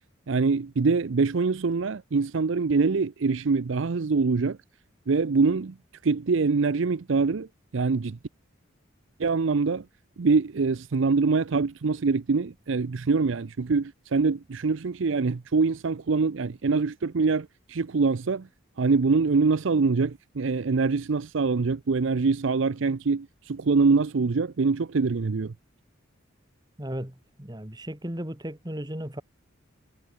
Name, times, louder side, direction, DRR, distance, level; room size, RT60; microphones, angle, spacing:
voice 1, 0.3-4.6 5.1-5.8 6.0-7.5 7.7-8.2 9.2-9.8 10.2-18.5 18.8-25.5, right 4 dB, 65° right, 0.5 m, -24 dB
voice 2, 26.8-29.2, right 1 dB, 20° right, 2.0 m, -35 dB
head